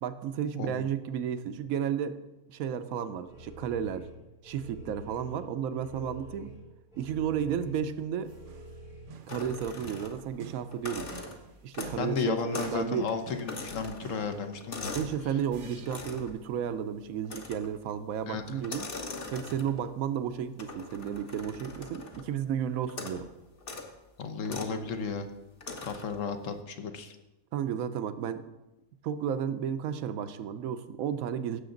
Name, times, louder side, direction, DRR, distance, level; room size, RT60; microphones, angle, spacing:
voice 1, 0.0-2.2 2.5-4.1 4.4-6.5 7.0-8.4 9.3-11.1 11.6-13.1 14.9-19.0 19.3-23.3 27.5-28.4 29.0-31.6, right 8 dB, 75° right, 11 dB, 1.1 m, -33 dB
voice 2, 0.5-0.9 11.9-14.9 18.3-18.6 24.2-25.3 25.8-27.2, left 5 dB, 60° left, 7 dB, 1.3 m, -33 dB
sound 1, 3.3-9.0, right 1 dB, 90° left, 5.3 m, -48 dB
sound 2, 7.8-13.0 13.3-14.5 15.5-16.0, right 7 dB, 55° right, 0.6 m, -49 dB
sound 3, 9.3-10.4 10.7-12.1 12.5-12.8 13.1-15.2 15.9-16.3 17.2-17.8 18.6-19.9 20.6-22.3 22.9-23.2 23.6-23.9 24.4-24.8 25.6-26.2, left 3 dB, 40° left, 1.2 m, -41 dB
16.5 x 6.8 x 3.9 m, 1.0 s
omnidirectional pair, 1.5 m